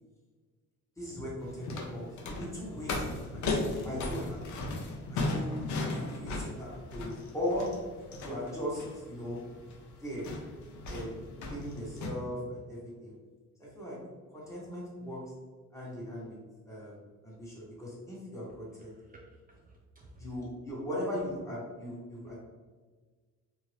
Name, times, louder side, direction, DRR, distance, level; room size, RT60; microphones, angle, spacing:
voice 1, 1.0-4.7 5.1-5.6 5.8-7.7 8.2-9.4 10.0-10.3 10.9-13.1 13.6-14.0 14.3-15.2 15.7-16.4 16.7-16.9 17.2-18.9 20.2-22.4, left 1 dB, 10° left, -6 dB, 1.3 m, -38 dB
sound 1, 1.4-12.1, left 2 dB, 70° left, 0.6 m, -37 dB
voice 2, 18.7-20.1 22.2-22.4, right 2 dB, 30° right, -1 dB, 0.4 m, -55 dB
2.7 x 2.5 x 3.2 m, 1.4 s
cardioid pair, 90°, 30 cm